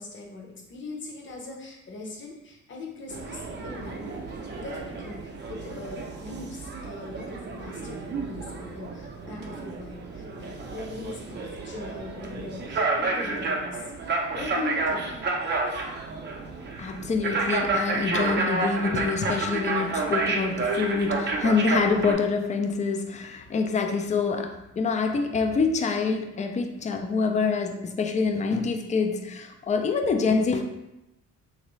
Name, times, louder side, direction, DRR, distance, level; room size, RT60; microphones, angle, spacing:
voice 1, 0.0-4.2 4.6-13.9 14.3-15.1, left 2 dB, 40° left, -1 dB, 0.8 m, -40 dB
sound 1, 3.1-22.1, right 3 dB, 35° right, 0.5 m, -30 dB
voice 2, 16.8-30.6, left 4 dB, 25° left, 5 dB, 0.4 m, -26 dB
3.1 x 2.6 x 3.1 m, 0.92 s
cardioid pair, 90°, 30 cm